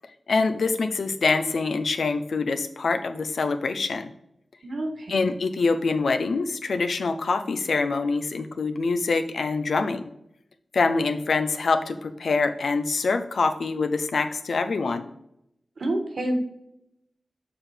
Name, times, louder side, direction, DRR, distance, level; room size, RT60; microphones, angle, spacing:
voice 1, 0.3-4.1 5.1-10.1 10.7-15.1, left 4 dB, 80° left, 8 dB, 0.6 m, -25 dB
voice 2, 4.6-5.3 15.8-16.4, right 1 dB, 70° right, 3 dB, 1.4 m, -28 dB
6.8 x 3.6 x 5.6 m, 0.79 s
cardioid pair, 60°, 0 cm